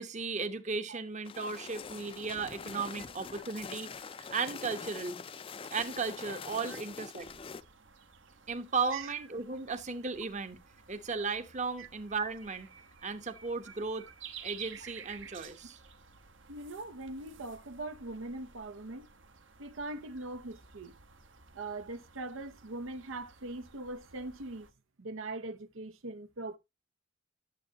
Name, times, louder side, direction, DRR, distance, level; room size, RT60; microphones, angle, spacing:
voice 1, 0.0-4.1 4.3-5.2 5.7-7.3 8.5-10.6 10.9-12.7 13.0-14.1 14.4-15.8, right 4 dB, 35° right, 0.9 m, -35 dB
sound 1, 1.2-7.6, left 5 dB, 30° left, 0.4 m, -44 dB
sound 2, 7.2-24.7, right 7 dB, 65° right, 1.1 m, -53 dB
voice 2, 16.5-19.1 19.6-20.9 21.5-24.7 25.0-26.6, right 2 dB, 85° right, 0.8 m, -41 dB
11.5 x 7.4 x 2.8 m
head